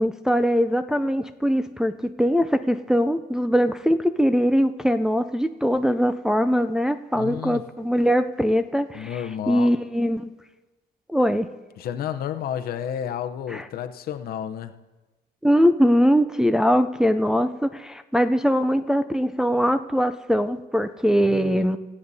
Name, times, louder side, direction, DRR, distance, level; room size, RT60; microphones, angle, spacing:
voice 1, 0.0-9.2 9.5-10.3 11.1-11.5 13.5-13.6 15.4-21.8, equal, 5° right, 8 dB, 0.4 m, -21 dB
voice 2, 7.2-7.6 8.9-9.7 11.8-14.7 21.2-21.7, left 9 dB, 65° left, 8 dB, 0.7 m, -31 dB
25.0 x 8.7 x 2.7 m, 1.2 s
cardioid pair, 110°, 17 cm